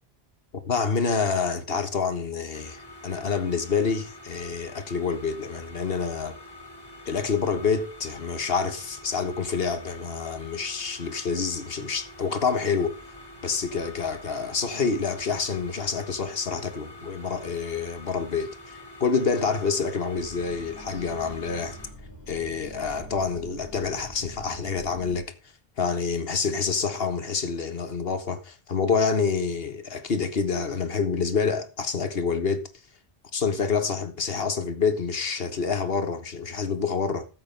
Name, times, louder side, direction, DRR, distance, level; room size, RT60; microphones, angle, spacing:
voice 1, 0.6-6.4 7.0-13.0 13.4-21.8 22.3-25.3 25.8-32.7 33.3-37.3, left 5 dB, 60° left, 1.6 m, -27 dB
industrial steam pipes hiss hum, 2.5-21.9, left 1 dB, 20° left, 2.6 m, -46 dB
sound 1, 20.1-25.2, equal, 15° right, 4.6 m, -44 dB
13.5 x 7.7 x 5.3 m
omnidirectional pair, 1.1 m